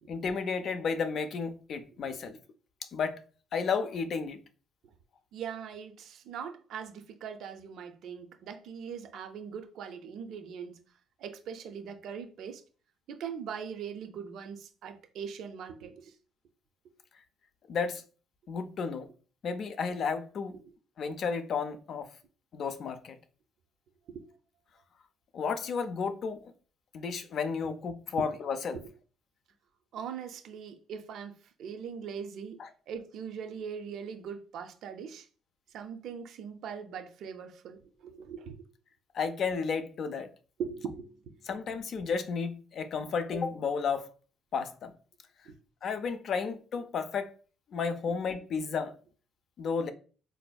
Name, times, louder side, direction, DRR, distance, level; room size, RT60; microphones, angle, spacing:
voice 1, 0.1-2.4 2.9-3.2 3.5-4.4 17.7-18.0 18.5-19.1 19.4-20.6 21.0-22.1 22.5-23.2 25.3-26.5 26.9-28.8 32.6-32.7 39.1-40.3 41.5-44.1 44.5-44.9 45.8-47.3 47.7-48.9 49.6-49.9, left 5 dB, 55° left, 0.4 m, -32 dB
voice 2, 5.3-10.8 11.2-12.6 13.1-16.1 24.1-24.2 28.7-28.9 29.9-32.6 32.9-35.3 35.7-38.6 40.6-41.3 45.5-45.6, right 7 dB, 70° right, 0.4 m, -41 dB
4.0 x 2.6 x 2.2 m
cardioid pair, 125°, 0 cm